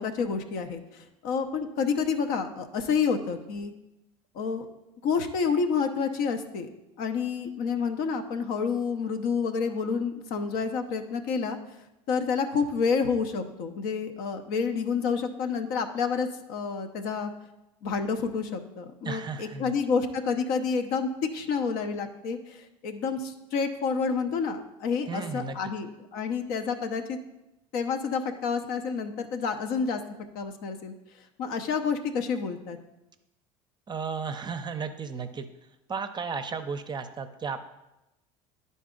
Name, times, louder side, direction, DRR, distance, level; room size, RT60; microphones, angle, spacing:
voice 1, 0.0-3.7 4.3-4.7 5.0-6.7 7.0-11.6 12.1-17.3 17.8-27.2 27.7-30.0 30.3-30.9 31.4-32.8, left 5 dB, 60° left, 7 dB, 0.8 m, -29 dB
voice 2, 19.0-19.7 25.1-25.6 33.9-35.5 35.9-37.6, right 5 dB, 25° right, 8 dB, 0.6 m, -34 dB
10.0 x 4.0 x 3.8 m, 0.93 s
hypercardioid pair, 75°, 17 cm